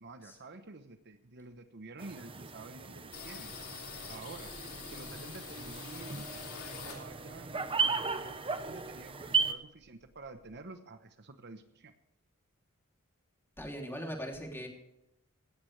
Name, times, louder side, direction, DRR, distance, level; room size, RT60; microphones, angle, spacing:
voice 1, 0.0-3.5 4.1-4.5 4.9-6.3 6.8-11.9, right 3 dB, 50° right, 9 dB, 1.0 m, -49 dB
sound 1, 2.0-9.5, right 5 dB, 25° right, 0.9 m, -36 dB
sound 2, 3.1-7.5 7.8-9.2 9.5-9.6 9.8-10.6, left 7 dB, 75° left, 3.0 m, -47 dB
voice 2, 13.6-14.7, equal, 10° left, 1 dB, 3.0 m, -40 dB
17.0 x 15.5 x 3.3 m, 0.85 s
head